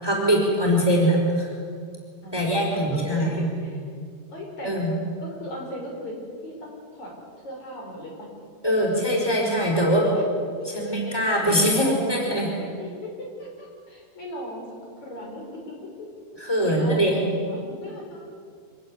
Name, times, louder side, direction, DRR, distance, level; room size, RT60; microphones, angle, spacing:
voice 1, 0.0-1.5 2.3-3.5 4.6-4.9 8.6-10.1 10.7-12.5 16.4-17.1, equal, 5° right, -1 dB, 4.7 m, -22 dB
voice 2, 2.2-3.8 4.3-4.7 5.2-6.2 6.4-7.1 7.4-8.3 10.0-10.2 10.6-11.0 12.6-14.7 15.0-16.1 16.6-18.2, equal, 50° left, -1 dB, 6.5 m, -37 dB
26.0 x 17.0 x 9.9 m, 2.1 s
omnidirectional pair, 4.2 m